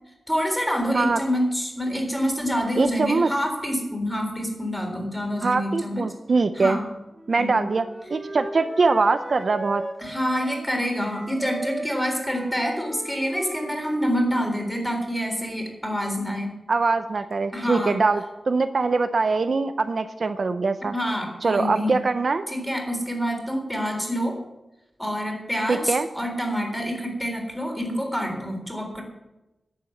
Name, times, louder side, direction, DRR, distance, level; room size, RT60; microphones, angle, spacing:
voice 1, 0.3-6.1 6.6-6.8 7.4-7.6 10.0-16.5 17.5-18.0 20.9-21.9 22.5-24.4 25.0-29.0, equal, 5° left, 2 dB, 3.8 m, -27 dB
voice 2, 2.8-3.3 5.4-6.8 7.3-9.8 16.7-20.9 21.4-22.4 25.7-26.1, right 4 dB, 55° right, 9 dB, 0.6 m, -23 dB
Wind instrument woodwind instrument, 7.1-10.7 11.0-14.8, right 2 dB, 25° right, 1.9 m, -38 dB
11.0 x 8.7 x 7.9 m, 0.99 s
wide cardioid pair, 95°, 0 cm